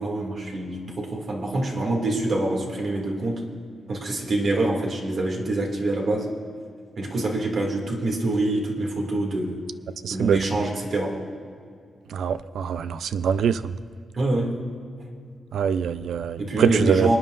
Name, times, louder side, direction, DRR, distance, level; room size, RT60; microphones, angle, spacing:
voice 1, 0.0-3.4 3.9-6.3 7.0-9.7 10.1-11.2 14.1-14.6 16.4-17.2, right 2 dB, 65° right, -1 dB, 2.2 m, -25 dB
voice 2, 10.0-10.4 12.1-13.6 15.5-17.2, right 7 dB, 85° right, 13 dB, 0.4 m, -24 dB
26.0 x 9.5 x 2.5 m, 2.3 s
cardioid pair, 95°, 0 cm